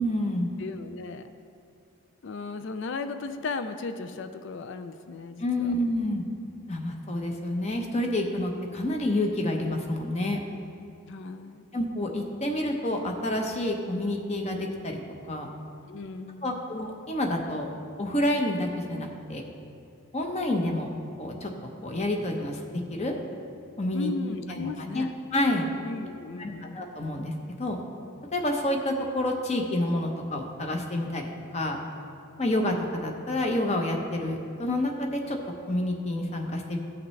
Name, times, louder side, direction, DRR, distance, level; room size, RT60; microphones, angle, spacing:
voice 1, 0.0-0.5 5.4-6.2 6.7-10.4 11.7-15.0 15.3-15.5 16.4-17.7 18.0-19.4 20.1-20.9 21.2-21.5 21.8-22.6 22.9-23.2 23.8-24.1 24.5-25.1 25.3-25.7 26.4-27.8 28.3-31.8 32.4-35.4 35.7-36.8, left 1 dB, 30° left, 2 dB, 0.8 m, -28 dB
voice 2, 0.6-1.3 2.2-5.7 11.1-11.7 15.8-16.6 23.9-25.1 25.8-26.8, left 4 dB, 55° left, 10 dB, 0.4 m, -36 dB
15.0 x 5.8 x 3.2 m, 2.5 s
head